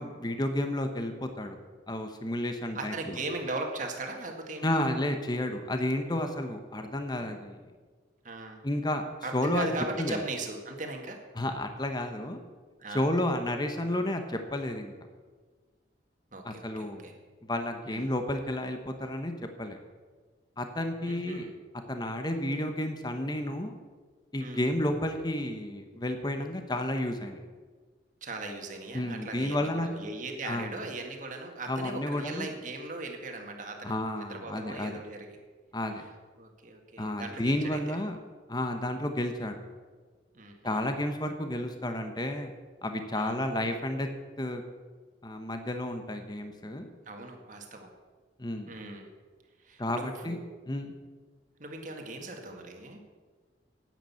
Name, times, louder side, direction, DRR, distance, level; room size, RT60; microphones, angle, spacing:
voice 1, 0.0-1.6 1.9-3.2 4.6-7.6 8.6-9.0 9.3-9.7 10.0-10.2 11.3-12.4 12.9-14.9 16.4-17.0 17.4-19.3 19.6-19.8 20.6-21.5 21.9-23.8 24.3-27.4 28.9-29.9 30.4-30.7 31.7-32.5 33.8-34.9 35.7-36.0 37.0-38.2 38.5-39.5 40.6-42.5 42.8-44.1 44.4-44.6 45.2-46.9 48.4-48.7 49.8-50.4 50.7-50.9, left 1 dB, 25° left, 6 dB, 1.0 m, -31 dB
voice 2, 2.7-4.9 8.2-8.6 9.2-11.2 12.8-13.1 16.3-17.1 17.9-18.0 21.0-21.5 24.4-24.6 28.2-35.4 36.4-38.0 40.3-40.9 43.1-43.4 47.1-47.9 48.7-49.1 49.6-50.4 51.6-53.0, right 2 dB, 45° right, 3 dB, 1.9 m, -38 dB
10.0 x 9.3 x 8.4 m, 1.5 s
head